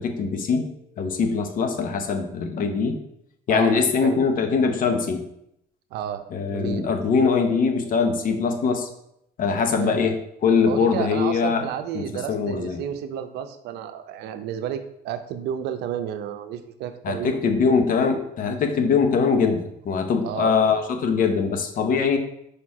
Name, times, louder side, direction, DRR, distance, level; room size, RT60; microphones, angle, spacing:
voice 1, 0.0-3.0 3.5-5.2 6.3-8.9 9.4-11.7 11.9-12.8 17.0-22.2, left 5 dB, 55° left, 7 dB, 0.9 m, -22 dB
voice 2, 3.5-4.2 5.9-6.9 9.7-10.1 10.7-17.5 20.2-20.6, right 9 dB, 85° right, 9 dB, 0.7 m, -32 dB
5.1 x 4.4 x 4.8 m, 0.77 s
cardioid pair, 110°, 17 cm